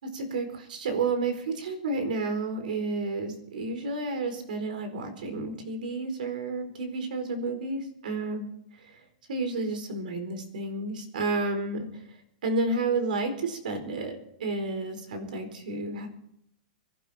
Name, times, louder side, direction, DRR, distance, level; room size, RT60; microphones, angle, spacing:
voice 1, 0.0-8.5 9.3-11.9 12.4-14.1 14.4-16.1, right 3 dB, 85° right, 8 dB, 4.3 m, -31 dB
25.0 x 12.0 x 4.3 m, 0.72 s
supercardioid pair, 170°, 4 cm